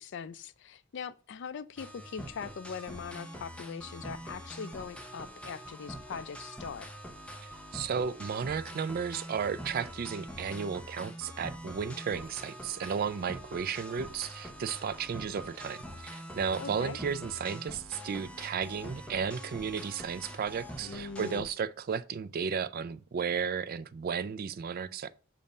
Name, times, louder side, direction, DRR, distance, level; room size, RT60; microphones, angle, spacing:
voice 1, 0.0-6.9 16.6-17.0 20.8-21.5, left 6 dB, 60° left, 0.4 m, -41 dB
sound 1, 1.8-21.4, equal, 5° left, 0.7 m, -44 dB
voice 2, 7.7-25.1, right 6 dB, 45° right, 0.4 m, -34 dB
6.9 x 2.6 x 5.2 m
head